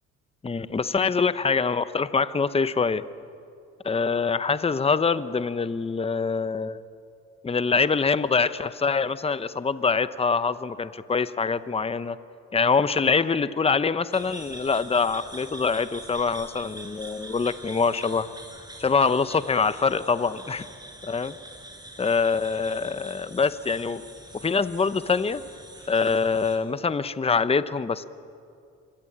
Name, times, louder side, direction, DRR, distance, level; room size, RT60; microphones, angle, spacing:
voice 1, 0.4-3.0 3.8-6.8 7.4-12.2 12.5-18.3 18.8-20.7 21.0-21.3 22.0-24.0 24.3-25.4 25.9-28.0, left 5 dB, 20° left, 13 dB, 0.8 m, -24 dB
sound 1, 14.1-26.6, right 1 dB, 15° right, 6.4 m, -44 dB
26.0 x 23.5 x 8.7 m, 2.5 s
cardioid pair, 90°, 30 cm